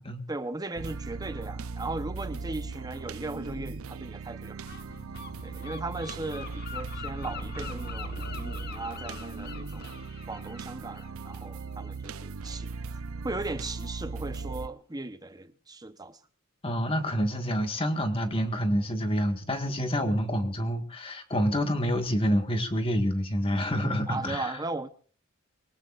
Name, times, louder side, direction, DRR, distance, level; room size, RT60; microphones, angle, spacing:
voice 1, 0.3-4.6 5.4-9.9 10.3-13.0 13.2-16.2 24.1-24.9, right 2 dB, 15° right, 0.9 m, -37 dB
sound 1, 0.8-14.7, right 4 dB, 75° right, 0.6 m, -38 dB
Gull seagull, 4.6-12.1, left 5 dB, 45° left, 1.1 m, -44 dB
voice 2, 16.6-24.6, equal, 25° left, 1.7 m, -27 dB
23.0 x 18.0 x 2.5 m
head